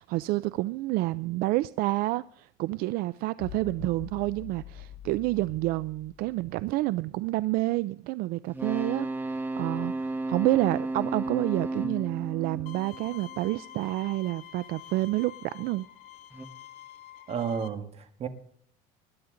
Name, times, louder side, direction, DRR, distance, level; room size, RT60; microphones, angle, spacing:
voice 1, 0.0-9.1 9.6-15.9, right 18 dB, 65° right, 0.4 m, -29 dB
sound 1, 3.4-6.8, left 8 dB, 40° left, 5.6 m, -46 dB
sound 2, 8.5-13.5 16.3-16.4, right 2 dB, 10° right, 1.3 m, -33 dB
Bowed string instrument, 12.7-17.7, left 13 dB, 70° left, 1.3 m, -47 dB
voice 2, 17.3-18.3, right 7 dB, 40° right, 1.7 m, -32 dB
20.5 x 11.0 x 3.8 m
cardioid pair, 135°, 16 cm